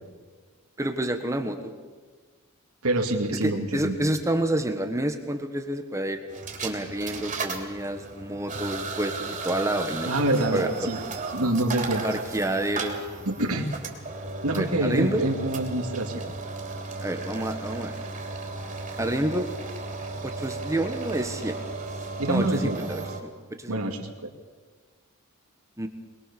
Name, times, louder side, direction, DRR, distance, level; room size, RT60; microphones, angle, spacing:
voice 1, 0.8-1.7 3.4-6.2 6.6-10.9 12.0-13.0 14.5-15.2 17.0-17.9 19.0-19.5 20.2-21.6 22.3-23.3 23.6-23.8 25.8-25.9, right 1 dB, 15° right, 6 dB, 1.5 m, -29 dB
voice 2, 2.8-4.0 10.1-11.0 11.3-12.1 13.3-13.7 14.4-16.2 22.2-22.8 23.7-24.3, right 1 dB, 80° right, 2 dB, 2.4 m, -26 dB
sound 1, 6.3-23.2, right 3 dB, 35° right, 3.4 m, -35 dB
23.5 x 21.0 x 7.0 m, 1.5 s
head